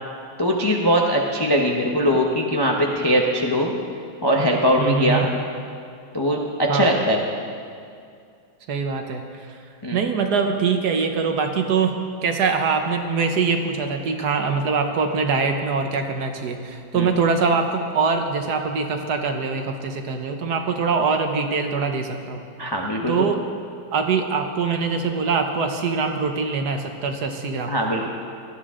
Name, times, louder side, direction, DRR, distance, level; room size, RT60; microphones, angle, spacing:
voice 1, 0.4-3.7 4.2-5.3 6.1-7.2 9.8-10.0 16.9-17.1 22.6-23.3 27.7-28.1, equal, 25° left, 0 dB, 0.5 m, -21 dB
voice 2, 4.8-5.3 6.7-6.9 8.7-9.2 9.9-11.9 12.2-22.4 23.1-23.4 23.9-27.7, right 5 dB, 60° right, 5 dB, 1.3 m, -23 dB
18.0 x 13.0 x 3.7 m, 2.3 s
omnidirectional pair, 2.1 m